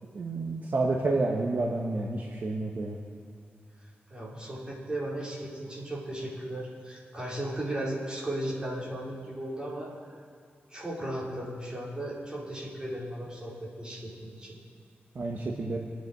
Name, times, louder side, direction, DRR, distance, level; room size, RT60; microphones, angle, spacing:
voice 1, 0.1-3.0 15.2-15.8, right 2 dB, 50° right, -1 dB, 1.6 m, -29 dB
voice 2, 4.1-9.9 10.7-14.6, right 1 dB, 20° right, -6 dB, 5.3 m, -36 dB
27.0 x 10.0 x 4.9 m, 2.3 s
wide cardioid pair, 125°, 4 cm